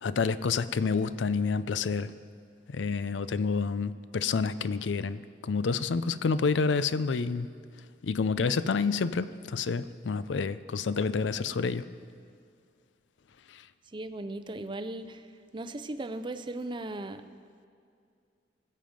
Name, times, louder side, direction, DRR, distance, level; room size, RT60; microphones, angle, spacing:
voice 1, 0.0-2.1 2.7-7.5 8.0-11.8 13.5-13.6, left 5 dB, 90° left, 15 dB, 0.5 m, -29 dB
voice 2, 13.9-15.2 15.5-17.2, right 2 dB, 25° right, 10 dB, 0.5 m, -37 dB
21.0 x 7.6 x 5.1 m, 2.3 s
head